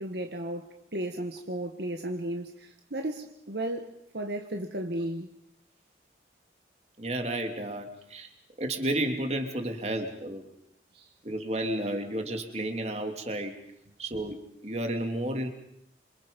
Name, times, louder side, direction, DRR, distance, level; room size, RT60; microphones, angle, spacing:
voice 1, 0.0-5.3 10.9-11.1, right 1 dB, 65° right, 1.7 m, -34 dB
voice 2, 7.0-8.3 8.6-10.4 11.2-13.5 14.0-15.5, right 1 dB, 35° right, 2.9 m, -32 dB
27.5 x 27.0 x 5.4 m
head